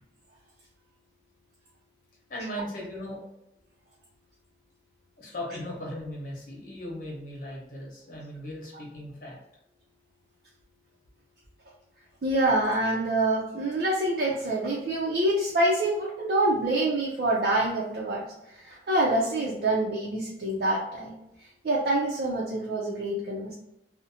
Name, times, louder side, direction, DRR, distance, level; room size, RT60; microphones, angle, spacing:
voice 1, 2.3-3.2 5.2-9.4, left 1 dB, 50° left, -3 dB, 1.0 m, -38 dB
voice 2, 12.2-18.2 18.6-21.1 21.6-23.5, right 1 dB, 55° right, -4 dB, 0.5 m, -26 dB
2.6 x 2.0 x 2.8 m, 0.85 s
head